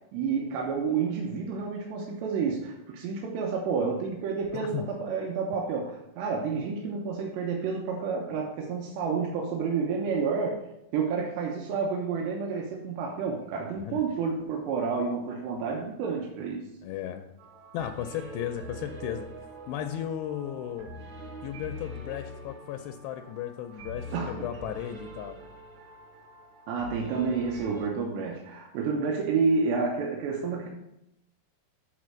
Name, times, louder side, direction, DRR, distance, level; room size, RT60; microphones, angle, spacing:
voice 1, 0.1-10.6 10.9-16.7 24.1-24.4 26.7-30.7, right 5 dB, 90° right, -1 dB, 3.1 m, -30 dB
voice 2, 4.5-4.9 13.8-14.0 16.8-17.3 17.7-19.3 19.7-20.9 21.4-25.4, left 11 dB, 85° left, 6 dB, 2.7 m, -35 dB
sound 1, 17.4-27.9, right 1 dB, 45° right, 4.5 m, -44 dB
8.4 x 4.5 x 6.2 m, 0.85 s
omnidirectional pair, 4.9 m